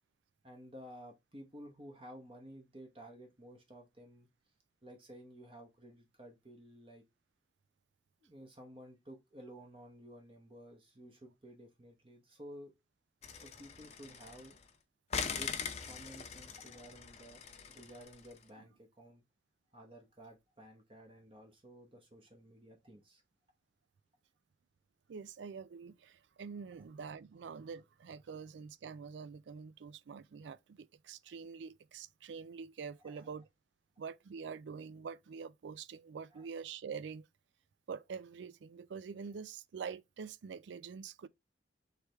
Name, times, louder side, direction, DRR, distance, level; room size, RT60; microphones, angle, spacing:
voice 1, 0.4-4.3 4.8-7.0 8.2-12.7 13.3-14.6 15.3-17.4 17.7-19.2 19.7-23.2 33.0-33.3 36.3-36.5, equal, 30° right, 1.0 m, -53 dB
sound 1, 13.2-14.7 15.1-18.4, left 6 dB, 35° left, 0.6 m, -42 dB
voice 2, 25.1-33.4 34.0-37.3 37.9-41.3, right 6 dB, 75° right, 0.4 m, -46 dB
4.7 x 3.3 x 3.4 m
head